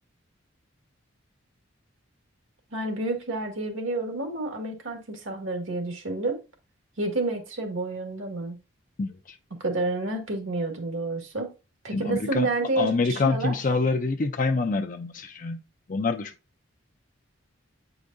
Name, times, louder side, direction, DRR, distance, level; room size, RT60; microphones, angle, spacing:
voice 1, 2.7-6.4 7.0-8.6 9.6-11.5 11.8-13.5, right 2 dB, 75° right, 1.9 m, -29 dB
voice 2, 9.0-9.4 11.9-12.5 12.8-15.6 15.9-16.3, left 3 dB, 40° left, 0.5 m, -26 dB
8.6 x 4.9 x 2.6 m
head